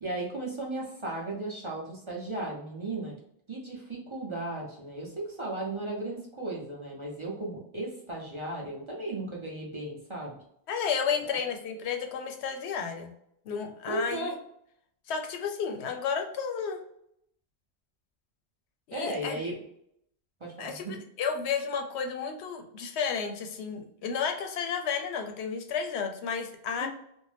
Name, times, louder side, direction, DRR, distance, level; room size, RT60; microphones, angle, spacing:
voice 1, 0.0-3.1 3.5-10.4 11.2-11.4 13.9-14.3 18.9-19.6 20.4-21.0 26.8-26.9, right 2 dB, 35° right, -3 dB, 0.6 m, -35 dB
voice 2, 10.7-13.1 13.5-14.3 15.1-16.8 18.9-19.4 20.6-20.9 21.2-26.9, left 6 dB, 85° left, 4 dB, 0.9 m, -32 dB
2.6 x 2.1 x 3.1 m, 0.72 s
omnidirectional pair, 1.1 m